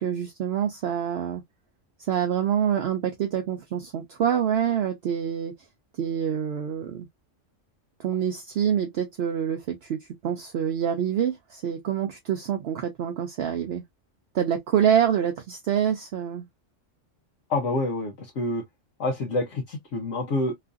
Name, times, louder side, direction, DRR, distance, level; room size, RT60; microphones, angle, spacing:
voice 1, 0.0-1.4 2.1-5.5 6.0-7.1 8.0-13.8 14.3-16.5, right 9 dB, 65° right, 0.7 m, -26 dB
voice 2, 17.5-18.6 19.0-20.5, left 2 dB, 75° left, 1.1 m, -27 dB
3.0 x 2.4 x 2.4 m
omnidirectional pair, 1.3 m